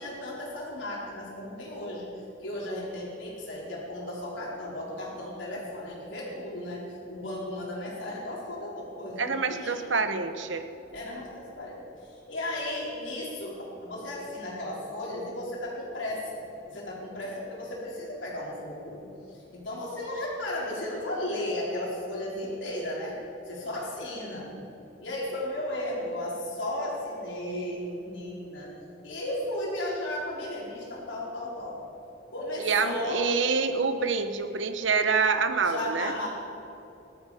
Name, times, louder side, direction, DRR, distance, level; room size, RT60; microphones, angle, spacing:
voice 1, 0.0-2.1 2.4-9.8 10.9-23.2 23.5-24.5 25.0-28.7 29.0-31.8 32.3-33.3 35.6-36.3, left 1 dB, 80° left, -4 dB, 4.3 m, -35 dB
voice 2, 9.2-10.7 32.6-36.1, right 5 dB, 80° right, 9 dB, 0.9 m, -26 dB
19.0 x 12.5 x 5.0 m, 2.9 s
head